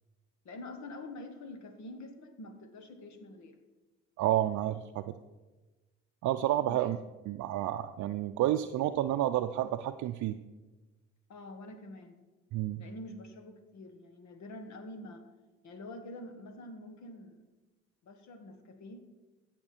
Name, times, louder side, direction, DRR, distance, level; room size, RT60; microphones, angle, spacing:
voice 1, 0.4-3.6 6.7-6.9 11.3-12.2 12.8-15.2 15.6-17.4 18.0-19.0, left 2 dB, 65° left, 7 dB, 1.4 m, -46 dB
voice 2, 4.2-5.1 6.2-7.0 7.3-10.4 12.5-12.8, right 13 dB, 70° right, 7 dB, 0.5 m, -30 dB
15.5 x 5.8 x 4.4 m, 1.1 s
supercardioid pair, 70°, 30 cm